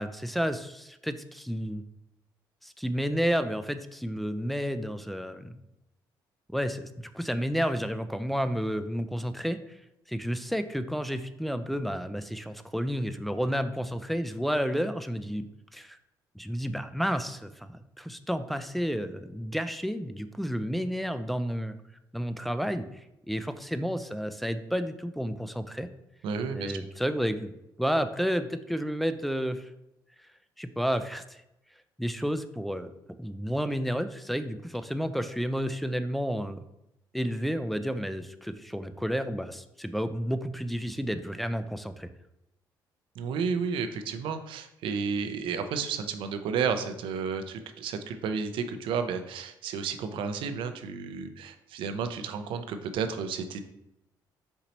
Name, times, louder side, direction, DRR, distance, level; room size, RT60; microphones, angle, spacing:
voice 1, 0.0-1.8 2.6-5.6 6.5-9.8 10.1-15.5 15.7-16.0 16.4-21.7 22.1-25.9 26.5-27.5 27.8-29.7 30.6-31.4 32.0-32.9 33.2-36.6 37.1-42.1, equal, ahead, 9 dB, 0.3 m, -31 dB
voice 2, 26.2-26.8 43.2-53.6, right 6 dB, 75° right, 8 dB, 0.5 m, -32 dB
4.4 x 2.8 x 4.0 m, 0.86 s
cardioid pair, 80°, 9 cm